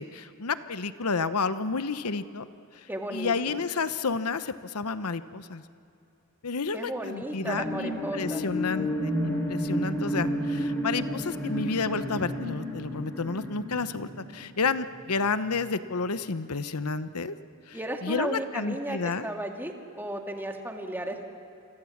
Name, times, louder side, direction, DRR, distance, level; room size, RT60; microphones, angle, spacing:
voice 1, 0.0-2.5 2.7-5.6 6.4-17.3 17.7-19.3, left 4 dB, 90° left, 12 dB, 1.0 m, -31 dB
voice 2, 2.9-3.6 6.7-8.4 17.7-21.2, right 1 dB, 10° right, 2 dB, 2.1 m, -34 dB
sound 1, 7.3-15.1 15.6-15.7, equal, 10° left, 4.8 m, -31 dB
29.0 x 24.0 x 7.3 m, 2.7 s
head